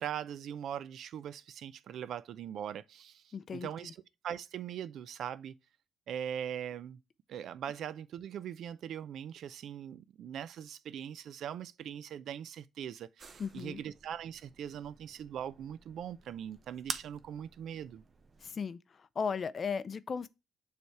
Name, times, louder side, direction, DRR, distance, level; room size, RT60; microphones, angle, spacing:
voice 1, 0.0-4.0 4.2-5.6 6.1-7.0 7.3-18.0, right 9 dB, 70° right, 0.4 m, -41 dB
voice 2, 3.3-3.9 13.4-13.8 18.4-20.3, left 6 dB, 45° left, 0.4 m, -36 dB
sound 1, 13.2-18.5, right 4 dB, 40° right, 0.7 m, -48 dB
6.8 x 3.4 x 4.5 m
cardioid pair, 90°, 0 cm